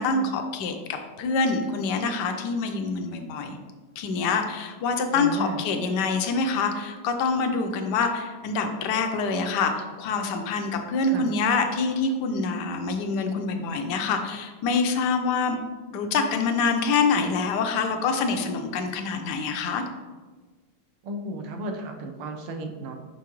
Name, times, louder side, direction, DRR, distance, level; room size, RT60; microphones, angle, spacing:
voice 1, 0.0-3.6 4.0-15.6 15.9-19.8, left 4 dB, 70° left, 5 dB, 1.0 m, -26 dB
voice 2, 5.1-5.6 11.1-11.3 21.0-22.9, right 1 dB, 80° right, 4 dB, 1.6 m, -34 dB
6.0 x 5.3 x 3.0 m, 1.4 s
omnidirectional pair, 2.4 m